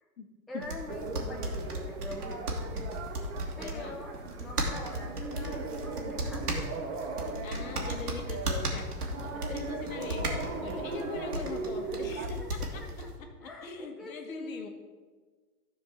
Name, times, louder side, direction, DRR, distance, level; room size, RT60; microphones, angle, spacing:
voice 1, 0.5-2.8 3.6-4.1 4.4-6.9 11.8-13.1 13.4-14.7, left 1 dB, ahead, -1 dB, 0.6 m, -45 dB
sound 1, 0.6-13.2, right 1 dB, 80° right, 2.1 m, -36 dB
sound 2, 0.9-12.3, right 4 dB, 45° right, 1.5 m, -39 dB
voice 2, 3.6-4.0 7.4-10.3 10.6-12.9 13.2-14.7, left 4 dB, 60° left, 5 dB, 1.6 m, -41 dB
13.0 x 4.6 x 6.0 m, 1.4 s
hypercardioid pair, 120°, 45 cm